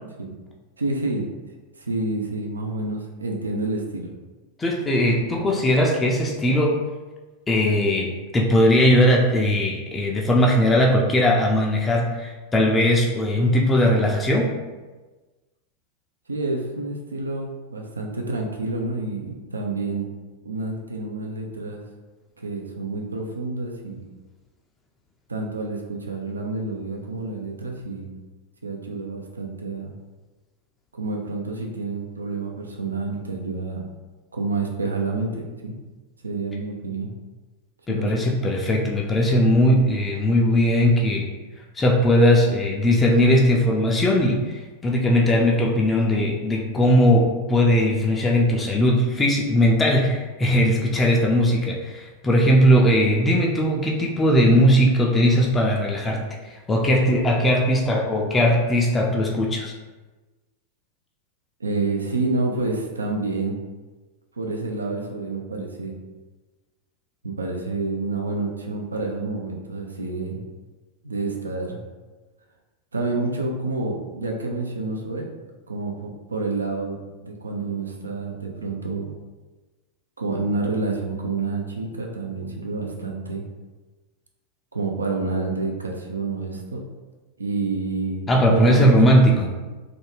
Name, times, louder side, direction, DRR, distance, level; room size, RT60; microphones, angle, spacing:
voice 1, 0.8-1.3 1.8-4.1 5.4-5.5 16.3-20.1 20.4-21.8 22.4-24.0 25.3-28.1 28.6-29.9 31.0-33.9 34.3-35.8 36.2-37.1 37.9-38.2 61.6-63.6 64.4-66.0 67.2-70.4 71.0-71.8 72.9-75.3 75.7-79.1 80.2-83.4 84.7-86.8 87.4-89.0, right 3 dB, 85° right, 1 dB, 0.3 m, -28 dB
voice 2, 4.6-6.8 7.5-14.5 37.9-41.3 41.8-59.7 88.3-89.5, equal, 15° left, -1 dB, 0.4 m, -19 dB
2.5 x 2.2 x 3.2 m, 1.3 s
figure-of-eight pair, 90°, 0 cm